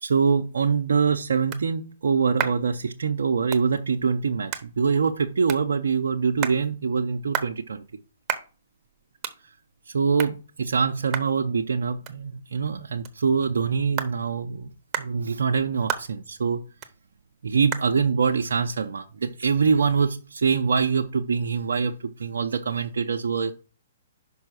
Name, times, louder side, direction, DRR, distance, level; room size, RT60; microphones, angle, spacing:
voice 1, 0.0-7.8 9.9-14.7 15.0-16.6 17.4-21.9 22.2-23.5, right 5 dB, 80° right, 3 dB, 0.7 m, -24 dB
sound 1, 0.6-19.9, right 9 dB, 25° right, 1.0 m, -38 dB
5.5 x 5.5 x 6.1 m, 0.35 s
hypercardioid pair, 135°, 0 cm